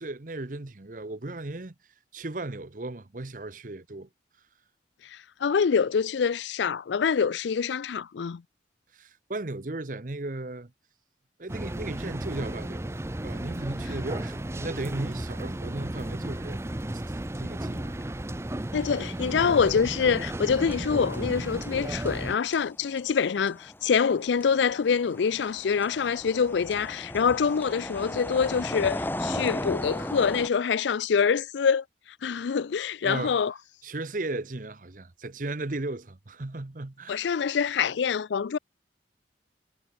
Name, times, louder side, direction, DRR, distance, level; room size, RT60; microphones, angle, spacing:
voice 1, 0.0-1.7 2.1-4.1 8.9-10.7 11.4-16.6 16.9-18.0 18.9-19.1 33.0-33.4 33.8-37.3, right 2 dB, 45° right, 0.9 m, -36 dB
voice 2, 5.0-8.4 18.7-31.8 32.2-33.5 37.1-38.6, left 6 dB, 75° left, 0.4 m, -25 dB
sound 1, 11.5-22.4, right 1 dB, 15° right, 0.6 m, -34 dB
sound 2, 20.5-21.4 21.6-30.5, left 1 dB, 10° left, 1.8 m, -36 dB
head